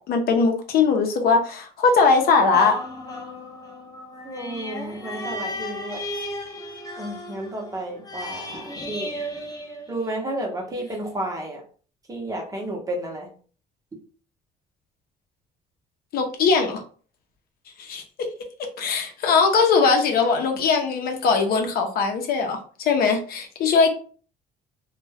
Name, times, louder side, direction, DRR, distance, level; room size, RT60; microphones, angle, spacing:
voice 1, 0.0-2.7 16.1-16.8 17.8-18.0 18.8-23.9, left 4 dB, 65° left, 4 dB, 0.6 m, -20 dB
sound 1, 2.5-10.4 10.9-11.0, left 1 dB, 20° left, 0.6 m, -35 dB
voice 2, 4.2-6.0 7.0-9.2 9.9-11.6 12.1-13.3, right 1 dB, 20° right, 1 dB, 0.8 m, -32 dB
2.2 x 2.2 x 3.3 m, 0.42 s
cardioid pair, 110°, 17 cm